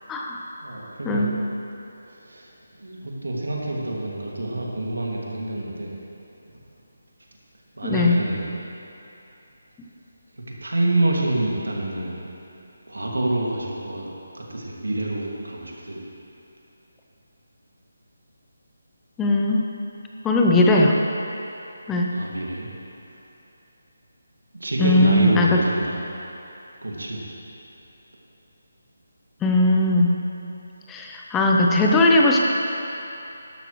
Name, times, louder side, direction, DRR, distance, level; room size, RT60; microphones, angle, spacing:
voice 1, 0.1-0.4 1.0-1.3 7.8-8.2 19.2-19.7 20.2-21.0 21.9-22.1 24.8-25.6 29.4-30.2 30.9-32.4, left 2 dB, 10° left, -1 dB, 0.7 m, -19 dB
voice 2, 0.6-1.3 2.0-2.5 2.8-6.0 7.8-8.5 10.3-12.3 12.9-14.1 14.3-16.0 22.1-22.7 24.5-26.0 26.8-27.3, right 1 dB, 85° right, -3 dB, 2.3 m, -27 dB
12.5 x 11.5 x 3.2 m, 2.9 s
figure-of-eight pair, 160°, 0 cm